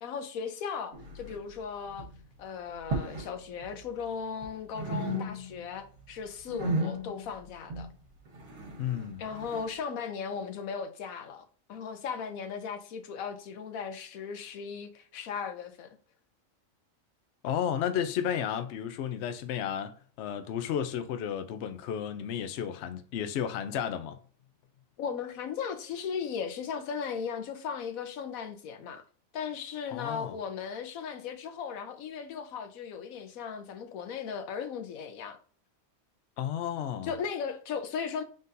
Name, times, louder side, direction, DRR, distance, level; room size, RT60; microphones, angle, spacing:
voice 1, 0.0-2.1 2.4-7.9 9.2-15.9 25.0-29.0 29.3-35.4 37.0-38.2, left 6 dB, 90° left, 1.1 m, -37 dB
sound 1, 0.9-1.6 1.9-2.2 2.8-3.4 3.6-4.5 4.7-5.7 6.0-9.7, right 1 dB, 60° right, 1.3 m, -35 dB
voice 2, 8.8-9.2 17.4-24.2 29.9-30.4 36.4-37.2, left 9 dB, 65° left, 0.8 m, -33 dB
4.0 x 3.7 x 2.6 m
omnidirectional pair, 1.4 m